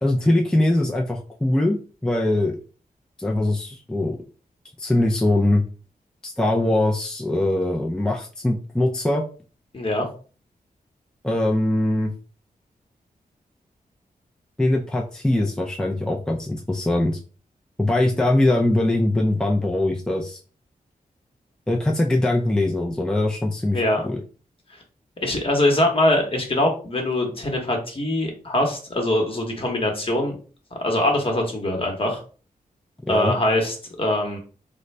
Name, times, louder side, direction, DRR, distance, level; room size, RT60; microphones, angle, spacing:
voice 1, 0.0-2.6 3.2-4.2 4.8-5.6 6.2-9.2 11.2-12.1 14.6-17.2 17.8-20.4 21.7-24.2 33.1-33.3, left 1 dB, 5° left, -1 dB, 0.4 m, -22 dB
voice 2, 9.7-10.0 23.7-24.0 25.2-30.4 30.8-32.2 33.1-34.4, left 1 dB, 35° left, 2 dB, 1.0 m, -22 dB
3.8 x 2.1 x 3.2 m, 0.38 s
wide cardioid pair, 120°, 15 cm